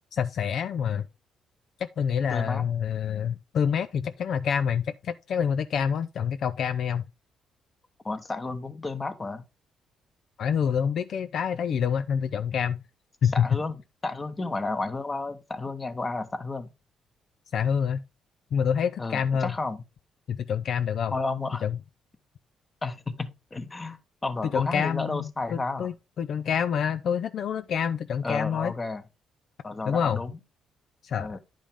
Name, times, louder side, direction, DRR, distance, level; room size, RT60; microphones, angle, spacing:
voice 1, 0.1-1.0 1.8-7.1 10.4-12.8 13.2-13.6 17.5-18.0 18.5-19.5 20.3-21.1 21.6-21.8 24.4-28.7 29.9-30.2 31.0-31.4, left 7 dB, 65° left, 0.4 m, -27 dB
voice 2, 2.3-2.6 8.0-9.4 13.3-13.8 14.0-16.7 19.0-19.8 21.1-21.6 22.8-25.9 28.2-29.0 29.6-30.4 31.2-31.4, left 3 dB, 25° left, 1.1 m, -32 dB
10.0 x 5.2 x 3.6 m
cardioid pair, 90°, 0 cm